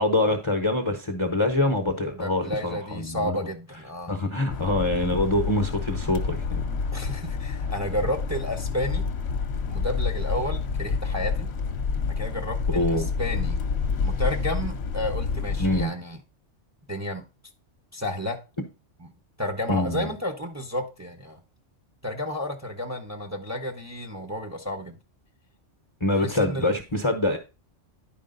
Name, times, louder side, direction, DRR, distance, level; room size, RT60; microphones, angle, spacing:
voice 1, 0.0-3.4 4.1-6.6 12.7-13.1 15.6-15.9 19.7-20.1 26.0-27.4, left 1 dB, 25° left, 0.9 m, -25 dB
voice 2, 2.1-4.1 6.9-9.0 9.7-11.5 12.2-13.6 14.0-16.2 16.9-17.2 17.9-18.4 19.0-19.1 19.4-21.4 22.0-25.0 26.2-26.7, left 1 dB, 15° right, 1.0 m, -31 dB
sound 1, 4.5-15.9, left 5 dB, 60° left, 1.0 m, -28 dB
10.5 x 5.0 x 3.9 m
omnidirectional pair, 1.3 m